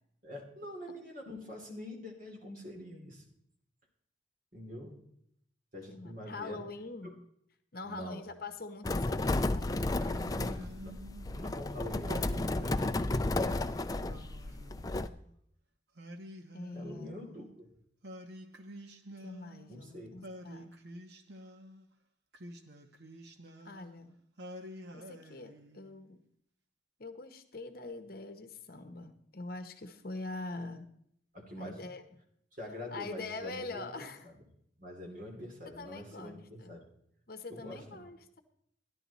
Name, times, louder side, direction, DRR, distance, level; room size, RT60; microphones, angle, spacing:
voice 1, 0.2-3.2 4.5-5.0 5.7-6.6 7.0-7.1 7.8-8.2 10.8-10.9 11.3-12.8 13.3-13.7 16.7-17.7 19.7-20.1 31.3-31.9 32.5-34.3 34.8-36.8 37.5-38.0, left 1 dB, 45° right, 0 dB, 2.7 m, -45 dB
voice 2, 5.9-7.2 7.7-10.1 16.5-17.1 19.2-20.7 23.6-24.2 24.9-26.2 27.0-30.9 31.6-32.0 32.9-34.3 35.7-36.8 37.3-38.4, left 3 dB, 50° left, 8 dB, 0.9 m, -44 dB
sound 1, 8.8-15.1, left 2 dB, 20° left, 0.4 m, -32 dB
Singing, 10.0-11.4 12.1-13.4 14.0-15.3 16.0-17.5 18.0-19.8 20.2-21.8 22.3-24.0 24.4-26.0, equal, 60° right, 1.0 m, -49 dB
13.5 x 11.0 x 4.1 m, 0.71 s
head